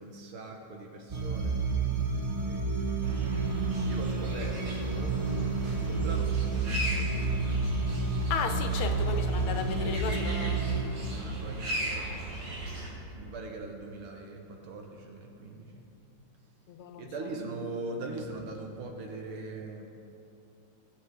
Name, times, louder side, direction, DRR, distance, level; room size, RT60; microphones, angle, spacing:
voice 1, 0.0-1.6 2.4-5.1 5.6-7.6 8.6-8.8 9.7-9.9 11.1-12.4 13.1-15.9 17.0-19.8, right 2 dB, 85° right, 2 dB, 2.1 m, -41 dB
sound 1, 1.1-10.8, right 4 dB, 35° right, 0.6 m, -30 dB
sound 2, 3.0-12.9, right 1 dB, 70° right, 2.6 m, -36 dB
voice 2, 8.3-11.0 16.7-17.1, left 6 dB, 90° left, 6 dB, 1.7 m, -35 dB
19.5 x 7.1 x 3.6 m, 2.7 s
omnidirectional pair, 2.3 m